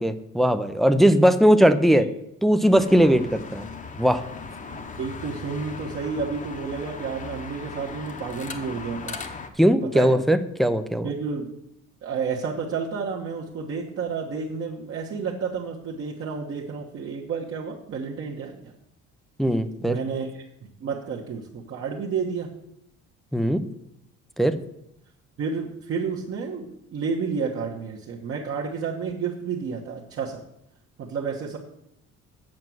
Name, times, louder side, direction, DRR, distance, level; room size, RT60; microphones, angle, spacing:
voice 1, 0.0-2.1 2.4-3.6 4.0-4.2 9.6-11.1 19.4-20.0 23.3-23.6 24.4-24.5, equal, ahead, 10 dB, 0.4 m, -19 dB
sound 1, 2.7-9.5, left 4 dB, 25° left, 0.9 m, -38 dB
voice 2, 4.7-9.2 9.9-10.2 11.0-11.5 12.0-18.7 19.8-20.4 20.8-22.5 25.4-30.4 31.0-31.6, right 5 dB, 50° right, -2 dB, 1.2 m, -31 dB
7.7 x 6.0 x 7.7 m, 0.78 s
cardioid pair, 145°, 29 cm